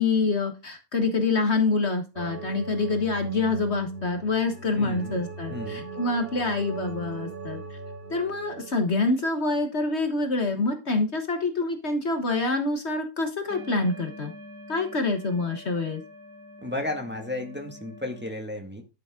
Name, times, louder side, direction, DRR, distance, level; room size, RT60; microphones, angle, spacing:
voice 1, 0.0-7.6 8.1-14.3 14.7-16.0, left 3 dB, 50° left, 5 dB, 1.6 m, -26 dB
sound 1, 2.2-9.1, right 3 dB, 40° right, 3.1 m, -39 dB
voice 2, 4.8-5.2 5.5-5.9 16.6-18.8, left 1 dB, 5° right, 2 dB, 1.8 m, -33 dB
sound 2, 13.5-18.3, left 1 dB, 80° right, 4.5 m, -45 dB
12.0 x 6.9 x 3.7 m, 0.28 s
omnidirectional pair, 1.5 m